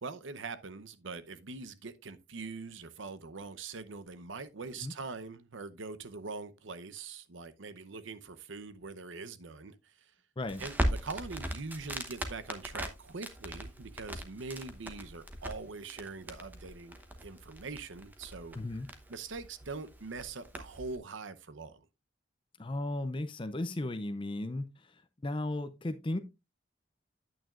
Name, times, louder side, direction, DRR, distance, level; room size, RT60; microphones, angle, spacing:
voice 1, 0.0-10.1 10.6-17.0 17.2-18.6 19.1-21.9, right 4 dB, 75° right, 0.8 m, -43 dB
Crackle, 10.4-21.0, right 1 dB, 10° right, 1.0 m, -39 dB
voice 2, 18.6-18.9 22.6-25.0 25.2-26.2, left 1 dB, 25° left, 0.5 m, -35 dB
9.0 x 9.0 x 2.4 m
head